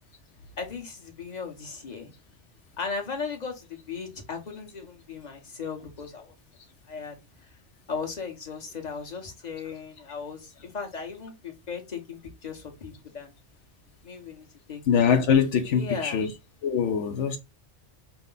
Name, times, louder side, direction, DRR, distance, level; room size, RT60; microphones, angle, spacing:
voice 1, 0.6-2.1 2.8-6.3 6.9-7.2 7.9-13.3 14.0-14.8 15.7-16.2, left 5 dB, 40° left, 1.2 m, -37 dB
voice 2, 14.9-16.3 16.6-17.4, left 7 dB, 80° left, 0.9 m, -23 dB
5.0 x 2.3 x 3.8 m
omnidirectional pair, 1.2 m